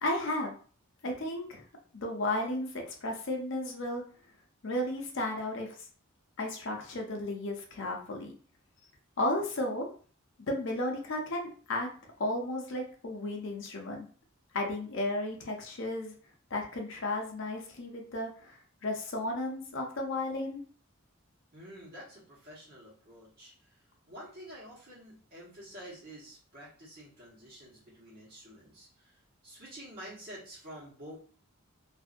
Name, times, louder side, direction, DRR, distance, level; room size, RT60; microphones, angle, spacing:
voice 1, 0.0-0.5 1.0-1.6 1.9-4.0 4.6-5.8 6.4-8.3 9.2-9.9 10.4-11.9 12.2-14.1 14.5-16.1 16.5-20.6, left 1 dB, 60° left, 1 dB, 0.6 m, -34 dB
voice 2, 21.5-23.8 24.1-29.2 29.4-31.2, equal, 45° right, -5 dB, 1.2 m, -49 dB
2.6 x 2.6 x 2.5 m, 0.42 s
head